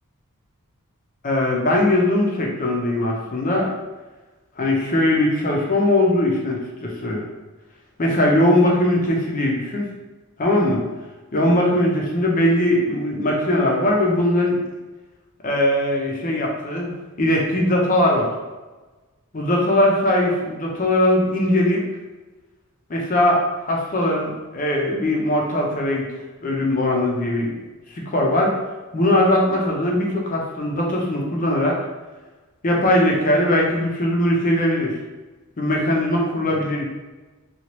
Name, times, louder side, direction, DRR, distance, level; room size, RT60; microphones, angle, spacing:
voice 1, 1.2-3.7 4.6-7.2 8.0-9.8 10.4-10.8 11.3-14.6 15.4-16.9 17.2-18.3 19.3-21.8 22.9-26.1 26.4-27.5 27.9-28.5 28.9-31.8 32.6-35.0 35.6-36.8, left 1 dB, 35° left, -1 dB, 0.6 m, -20 dB
2.9 x 2.4 x 3.0 m, 1.2 s
head